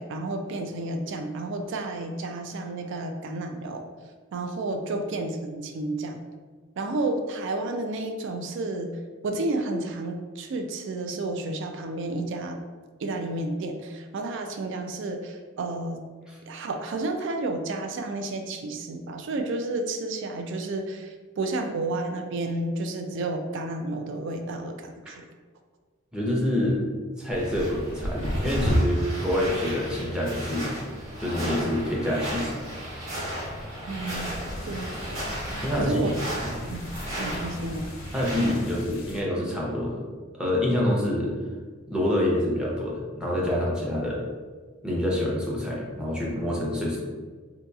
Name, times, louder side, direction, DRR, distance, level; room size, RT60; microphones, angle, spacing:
voice 1, 0.0-3.9 4.3-6.2 6.8-12.6 13.0-16.1 16.5-25.2 33.9-34.3 34.6-35.3 35.8-36.2 36.7-36.9 37.2-37.9, right 2 dB, 60° right, 5 dB, 0.3 m, -31 dB
voice 2, 26.1-26.8 27.2-30.8 31.2-32.5 35.6-36.5 38.1-40.0 40.4-41.3 41.9-44.2 44.8-47.0, left 1 dB, 5° right, -5 dB, 0.6 m, -26 dB
sound 1, 27.3-38.8, equal, 80° right, 1.4 m, -32 dB
sound 2, 34.2-39.2, left 1 dB, 75° left, 0.5 m, -41 dB
3.8 x 2.7 x 2.3 m, 1.4 s
head